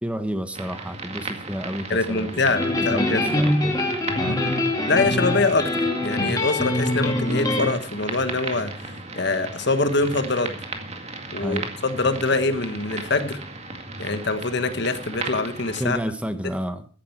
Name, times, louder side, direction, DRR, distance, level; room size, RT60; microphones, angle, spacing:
voice 1, 0.0-4.4 11.4-11.7 15.8-16.9, equal, 5° right, 8 dB, 1.2 m, -31 dB
sound 1, 0.5-15.8, right 3 dB, 35° right, 2.1 m, -36 dB
voice 2, 1.9-3.2 4.3-4.5 4.9-10.5 11.3-13.4 14.0-16.0, left 3 dB, 60° left, 9 dB, 1.4 m, -24 dB
sound 2, 2.5-7.7, left 1 dB, 20° left, 2.5 m, -24 dB
15.0 x 11.0 x 4.6 m, 0.40 s
head